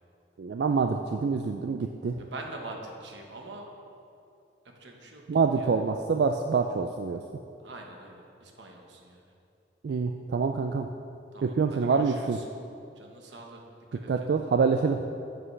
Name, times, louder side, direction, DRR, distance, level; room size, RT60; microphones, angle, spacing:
voice 1, 0.4-2.2 5.3-7.2 9.8-10.9 11.4-12.4 14.1-15.0, right 5 dB, 60° right, 5 dB, 0.3 m, -26 dB
voice 2, 2.2-3.7 4.8-5.2 5.5-5.8 7.6-9.2 11.3-12.4 13.0-13.6 13.9-14.4, right 2 dB, 85° right, 1 dB, 1.2 m, -44 dB
9.5 x 7.9 x 3.3 m, 2.6 s
head